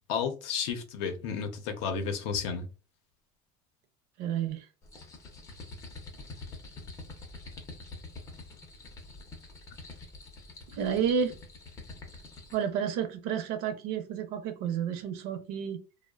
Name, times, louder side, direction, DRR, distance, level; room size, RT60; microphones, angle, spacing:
voice 1, 0.1-2.7, left 6 dB, 70° left, 0.6 m, -32 dB
voice 2, 4.2-4.7 10.7-11.4 12.5-15.8, right 7 dB, 55° right, 0.6 m, -30 dB
sound 1, 4.8-12.7, left 3 dB, 20° left, 0.5 m, -46 dB
2.8 x 2.1 x 2.3 m
cardioid pair, 175°, 15 cm